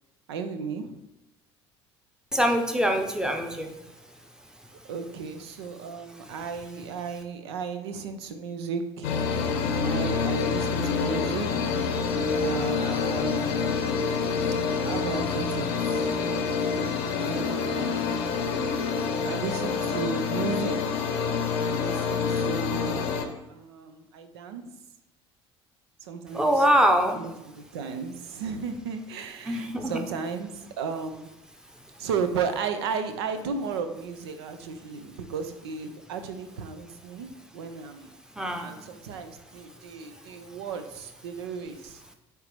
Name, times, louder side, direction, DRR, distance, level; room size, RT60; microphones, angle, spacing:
voice 1, 0.3-1.0 4.9-9.1 9.8-11.8 12.4-13.9 14.8-16.1 17.1-18.2 19.2-21.2 21.6-23.2 23.5-24.7 26.0-26.7 27.2-31.3 32.0-38.1 38.6-42.0, right 5 dB, 70° right, 8 dB, 0.6 m, -34 dB
voice 2, 2.3-3.7 26.3-27.2 29.5-30.0 38.4-38.7, equal, 5° right, 4 dB, 0.9 m, -23 dB
sound 1, 9.0-23.3, left 5 dB, 60° left, 0.7 m, -27 dB
9.2 x 3.3 x 3.3 m, 0.89 s
figure-of-eight pair, 60°, 14 cm